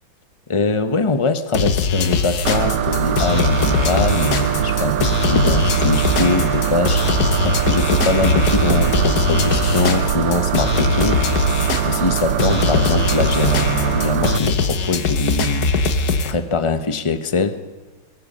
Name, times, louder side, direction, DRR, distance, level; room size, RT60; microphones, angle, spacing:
voice 1, 0.5-7.1 7.4-11.3 11.8-15.7 16.2-17.6, left 3 dB, 35° left, 10 dB, 0.4 m, -22 dB
sound 1, 1.5-16.3, left 4 dB, 50° left, 1.6 m, -21 dB
sound 2, 2.4-14.4, right 9 dB, 80° right, 1.7 m, -21 dB
23.0 x 21.0 x 5.5 m, 1.2 s
omnidirectional pair, 2.3 m